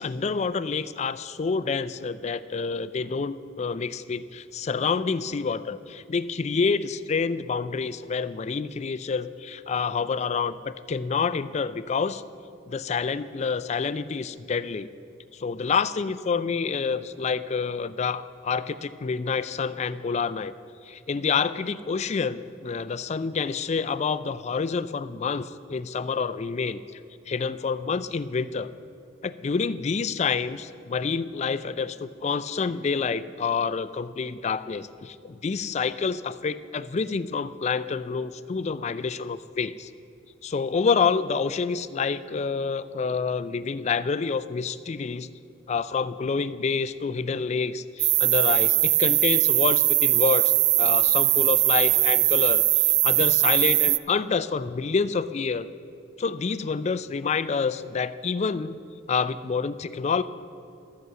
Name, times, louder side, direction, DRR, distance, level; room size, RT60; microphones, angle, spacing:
voice 1, 0.0-12.2 12.7-14.9 15.3-20.5 20.8-26.8 27.3-28.7 29.2-39.9 40.4-45.3 45.7-55.7 56.2-58.8 59.1-60.2, left 5 dB, 35° left, 14 dB, 0.4 m, -28 dB
sound 1, 48.0-54.0, right 17 dB, 60° right, 0.3 m, -21 dB
12.5 x 8.2 x 7.6 m, 2.5 s
head